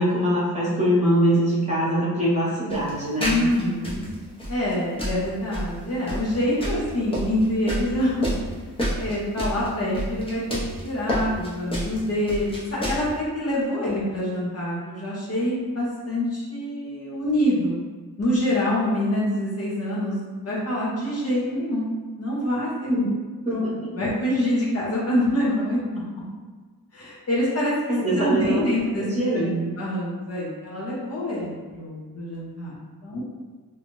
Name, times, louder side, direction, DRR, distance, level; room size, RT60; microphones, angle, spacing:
voice 1, 0.0-3.4 22.9-23.1 23.4-23.9 27.9-28.6 29.0-29.6, right 1 dB, 20° right, -8 dB, 1.0 m, -23 dB
sound 1, 2.7-13.1, equal, 15° left, 0.7 m, -29 dB
voice 2, 3.2-4.1 4.5-8.3 8.9-17.8 18.2-21.9 22.2-22.9 23.5-23.6 23.9-26.0 26.9-27.7 28.1-29.0 29.3-29.5 29.8-32.7 33.0-33.2, left 1 dB, 45° left, -6 dB, 0.8 m, -26 dB
2.7 x 2.3 x 3.0 m, 1.4 s
wide cardioid pair, 110°, 35 cm